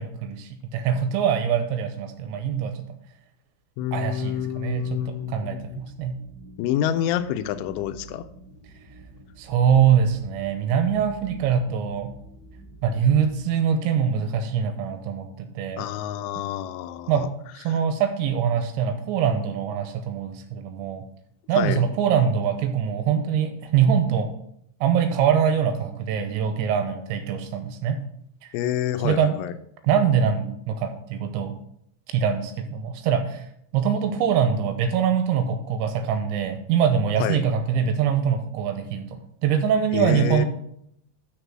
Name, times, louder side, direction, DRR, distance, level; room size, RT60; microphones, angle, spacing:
voice 1, 0.0-3.0 3.9-6.2 9.4-12.1 12.8-15.8 17.1-17.3 17.6-21.0 21.5-24.3 24.8-28.0 28.4-28.5 29.0-29.4 29.8-31.5 32.1-33.5 33.7-40.5, right 7 dB, 80° right, 7 dB, 3.1 m, -23 dB
voice 2, 3.8-5.8 6.6-8.3 15.8-17.3 17.7-17.8 21.6-21.8 28.5-29.5 37.2-37.4 39.9-40.5, left 10 dB, 85° left, 10 dB, 3.0 m, -28 dB
sound 1, 4.0-13.4, right 2 dB, 20° left, 2.8 m, -48 dB
6.7 x 6.7 x 6.1 m, 0.73 s
omnidirectional pair, 5.5 m